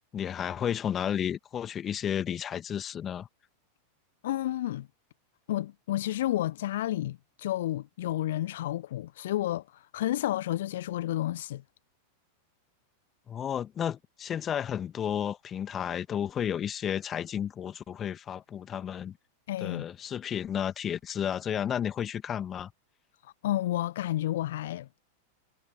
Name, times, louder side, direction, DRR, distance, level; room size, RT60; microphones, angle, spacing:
voice 1, 0.1-3.3 13.3-19.2 19.6-22.7, left 9 dB, 25° left, 2.0 m, -32 dB
voice 2, 4.2-4.9 5.5-11.6 19.5-19.8 23.2-24.9, left 14 dB, 55° left, 1.0 m, -31 dB
figure-of-eight pair, 90°, 0 cm